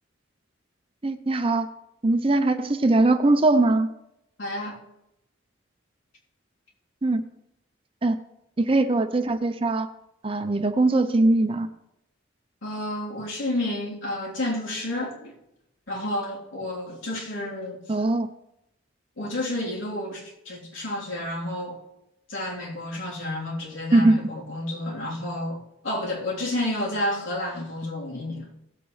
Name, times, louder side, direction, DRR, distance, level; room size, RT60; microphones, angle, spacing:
voice 1, 1.0-1.7 2.0-3.9 7.0-7.2 8.0-8.2 8.6-9.9 10.2-11.7 17.9-18.3 23.9-24.2, right 2 dB, 25° right, 0.5 m, -21 dB
voice 2, 4.4-4.8 12.6-15.3 15.9-18.0 19.2-21.8 22.3-28.5, left 1 dB, 75° left, 3.5 m, -30 dB
17.0 x 8.0 x 3.2 m
head